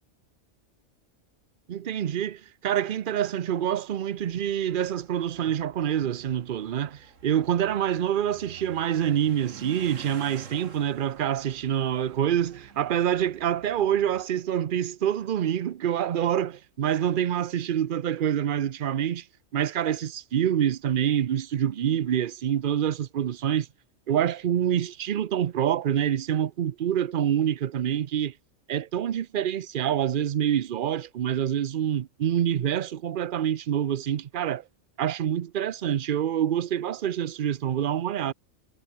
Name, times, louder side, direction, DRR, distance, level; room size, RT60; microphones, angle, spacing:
voice 1, 1.7-19.2 19.5-23.7 24.1-28.3 28.7-34.6 35.0-38.3, right 10 dB, 50° right, 0.7 m, -26 dB
sound 1, 4.2-14.2, right 5 dB, 90° right, 2.4 m, -50 dB
omnidirectional pair, 1.3 m